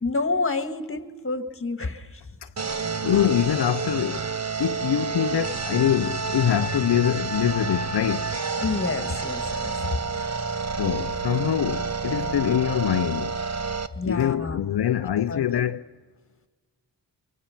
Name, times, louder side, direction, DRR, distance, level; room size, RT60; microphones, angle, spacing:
voice 1, 0.0-2.3 8.6-10.0 13.9-14.6 15.3-15.6, left 3 dB, 30° left, 1.9 m, -29 dB
sound 1, 2.6-13.9, right 4 dB, 40° right, 1.1 m, -29 dB
voice 2, 3.0-4.3 4.6-8.3 10.8-13.4 14.0-15.8, left 10 dB, 65° left, 0.6 m, -24 dB
25.5 x 24.5 x 5.9 m
cardioid pair, 60°, 43 cm